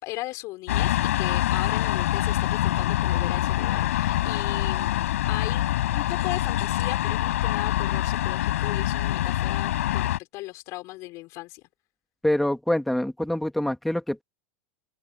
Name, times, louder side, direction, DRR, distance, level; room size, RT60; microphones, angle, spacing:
voice 1, 0.0-5.6 5.9-11.6, left 20 dB, 45° left, 4.4 m, -37 dB
sound 1, 0.7-10.2, left 13 dB, 85° left, 6.8 m, -25 dB
voice 2, 12.2-14.2, left 1 dB, ahead, 1.9 m, -25 dB
open air
supercardioid pair, 150°, 7 cm